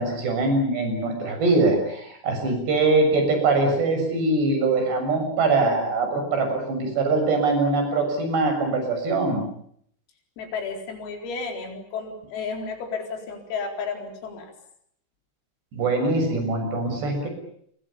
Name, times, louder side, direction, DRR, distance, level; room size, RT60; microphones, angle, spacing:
voice 1, 0.0-9.4 15.7-17.3, right 3 dB, 55° right, 5 dB, 8.8 m, -22 dB
voice 2, 10.4-14.5, left 5 dB, 90° left, 4 dB, 6.9 m, -32 dB
28.5 x 24.5 x 7.1 m, 0.67 s
omnidirectional pair, 5.9 m